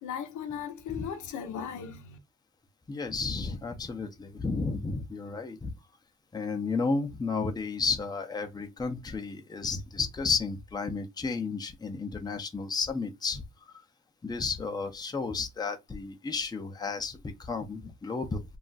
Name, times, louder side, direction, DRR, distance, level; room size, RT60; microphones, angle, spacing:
voice 1, 0.0-2.2, left 8 dB, 80° left, 0.7 m, -37 dB
voice 2, 2.9-5.7 6.3-13.4 14.2-18.4, left 4 dB, 15° left, 0.5 m, -32 dB
2.4 x 2.1 x 3.8 m
cardioid pair, 90°, 30 cm